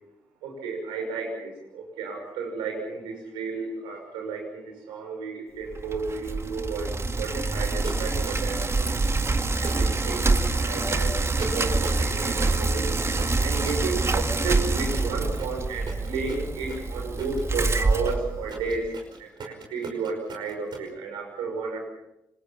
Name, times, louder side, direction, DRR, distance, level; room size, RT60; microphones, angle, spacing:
voice 1, 0.4-9.0 9.5-13.0 13.4-18.9 19.2-21.9, right 4 dB, 90° right, 2 dB, 6.0 m, -33 dB
Bicycle, 5.7-18.9, right 3 dB, 35° right, 2.0 m, -26 dB
sound 1, 7.8-8.6 9.6-10.2 11.4-12.1 13.2-20.9, right 4 dB, 65° right, 5.4 m, -38 dB
27.0 x 21.0 x 5.8 m, 0.89 s
supercardioid pair, 50°, 8 cm